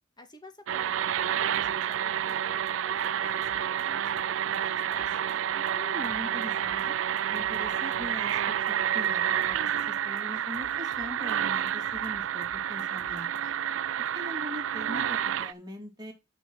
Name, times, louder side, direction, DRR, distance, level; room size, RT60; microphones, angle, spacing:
voice 1, 0.2-5.2, left 1 dB, 20° left, 6 dB, 1.7 m, -52 dB
sound 1, 0.7-15.5, right 9 dB, 85° right, 0.4 m, -29 dB
Drum kit, 1.5-2.0 2.3-2.4 2.7-2.8 3.0-3.1 3.4-4.2 4.5-4.6 4.9-5.4 5.7-5.8 6.0-6.9 7.2-8.4 8.7-8.8 9.0-9.1 9.4-9.9 10.2-11.4 11.7-13.4, right 3 dB, 55° right, 1.1 m, -55 dB
voice 2, 5.5-6.9 7.3-13.4 14.0-16.1, left 1 dB, 20° right, 1 dB, 2.6 m, -42 dB
6.6 x 6.1 x 6.0 m, 0.24 s
head